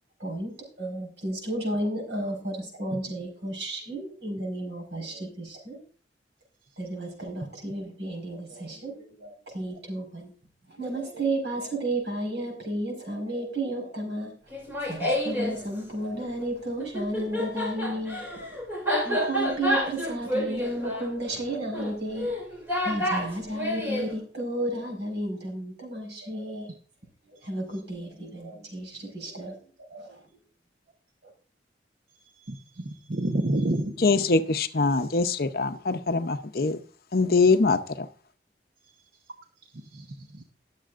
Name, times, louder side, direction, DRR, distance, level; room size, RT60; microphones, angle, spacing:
voice 1, 0.2-5.8 6.8-10.3 10.7-14.3 14.8-18.5 19.0-22.3 22.8-26.7 27.4-29.5 29.9-30.1, right 1 dB, 80° right, 2 dB, 4.9 m, -32 dB
Laughter, 14.5-15.6 16.8-24.1, equal, 10° right, 2.9 m, -29 dB
voice 2, 32.4-33.9 39.9-40.1 40.3-40.4, right 1 dB, 60° right, 4 dB, 0.9 m, -28 dB
voice 3, 34.0-36.8 37.1-37.8, left 3 dB, 55° left, 10 dB, 0.7 m, -23 dB
19.5 x 7.5 x 2.5 m, 0.42 s
head